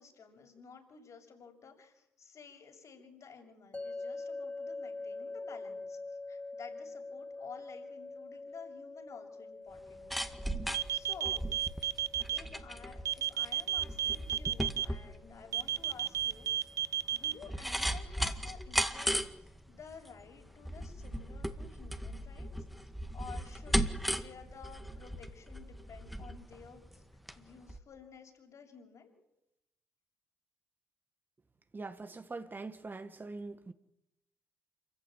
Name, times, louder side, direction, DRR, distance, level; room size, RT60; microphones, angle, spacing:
voice 1, 0.0-6.0 6.3-10.1 10.9-11.4 12.3-19.2 19.7-22.5 23.1-27.0 27.4-29.1, left 5 dB, 55° left, 6.9 m, -52 dB
sound 1, 3.7-16.9, left 3 dB, 20° left, 1.0 m, -46 dB
sound 2, 9.7-27.4 27.7-27.8, equal, ahead, 2.1 m, -37 dB
sound 3, 10.7-12.4 13.1-14.9 15.5-17.3, right 11 dB, 60° right, 0.8 m, -32 dB
voice 2, 31.7-33.7, right 3 dB, 30° right, 1.7 m, -43 dB
27.0 x 15.0 x 9.2 m
hypercardioid pair, 50°, 6 cm